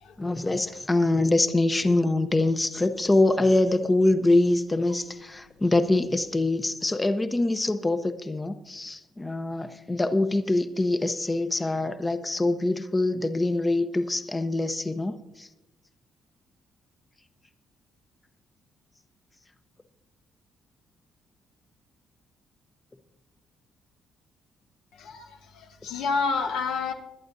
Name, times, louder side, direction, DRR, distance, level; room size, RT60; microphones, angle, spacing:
voice 1, 0.2-15.5, left 2 dB, 20° left, 9 dB, 0.8 m, -24 dB
voice 2, 25.0-25.3 25.5-26.9, left 4 dB, 90° left, 4 dB, 1.2 m, -28 dB
21.0 x 11.5 x 2.7 m, 0.95 s
cardioid pair, 90°, 0 cm